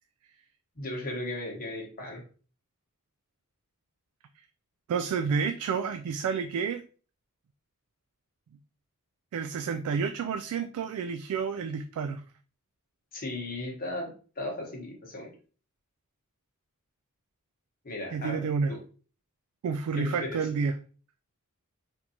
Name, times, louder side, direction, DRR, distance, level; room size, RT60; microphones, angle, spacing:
voice 1, 0.8-2.2 13.1-14.1 14.4-15.3 17.8-18.8 19.9-20.3, left 1 dB, 45° left, -1 dB, 1.3 m, -36 dB
voice 2, 4.9-6.8 9.3-12.2 18.1-18.7 19.6-20.7, right 5 dB, 85° right, 8 dB, 0.3 m, -30 dB
4.3 x 2.7 x 2.8 m, 0.39 s
head